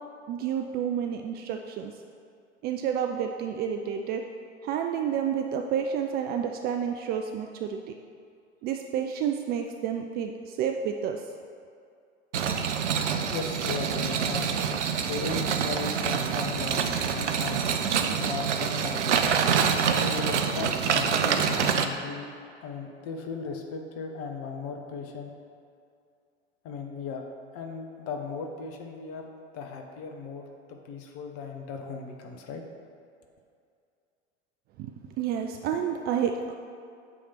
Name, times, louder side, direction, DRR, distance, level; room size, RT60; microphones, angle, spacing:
voice 1, 0.3-1.9 2.6-4.2 4.6-7.8 8.6-11.2 34.8-34.9 35.2-36.5, right 8 dB, 30° right, 4 dB, 0.3 m, -30 dB
sound 1, 12.3-21.9, right 7 dB, 75° right, 0.6 m, -26 dB
voice 2, 13.3-14.7 15.1-16.9 17.1-17.6 18.1-19.2 19.9-22.3 22.6-25.3 26.6-27.2 27.5-32.6, left 5 dB, 40° left, 3 dB, 1.0 m, -37 dB
8.5 x 3.3 x 5.8 m, 2.4 s
figure-of-eight pair, 80°, 35 cm